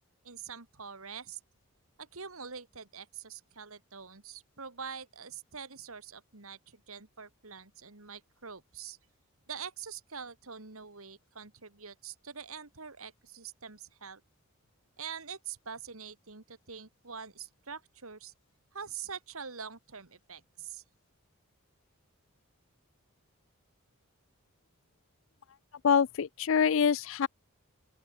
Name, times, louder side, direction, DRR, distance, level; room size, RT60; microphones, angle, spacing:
voice 1, 0.2-1.4 2.0-9.0 9.5-14.2 15.0-18.3 18.7-20.8, right 6 dB, 70° right, 2.4 m, -45 dB
voice 2, 25.8-27.3, left 7 dB, 60° left, 0.4 m, -25 dB
open air
head